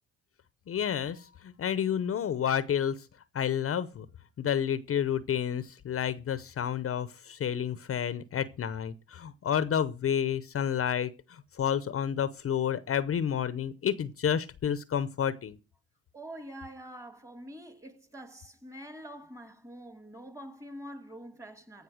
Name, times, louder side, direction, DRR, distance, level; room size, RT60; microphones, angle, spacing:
voice 1, 0.7-3.0 3.3-4.1 4.4-15.6, left 9 dB, 50° left, 0.8 m, -30 dB
voice 2, 16.1-21.8, equal, 10° right, 1.6 m, -45 dB
15.0 x 5.3 x 6.4 m
cardioid pair, 90°, 30 cm